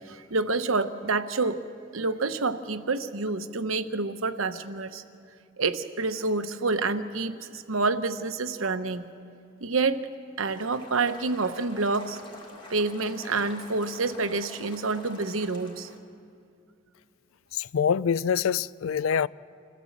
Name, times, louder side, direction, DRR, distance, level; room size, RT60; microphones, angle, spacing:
voice 1, 0.1-1.6 1.9-5.0 5.6-9.0 9.6-10.0 10.4-12.2 12.7-15.9, right 3 dB, 90° right, 1.0 m, -28 dB
sound 1, 10.4-16.0, left 2 dB, 25° left, 2.1 m, -47 dB
voice 2, 17.5-19.3, left 7 dB, 85° left, 0.4 m, -25 dB
26.5 x 15.0 x 7.3 m
head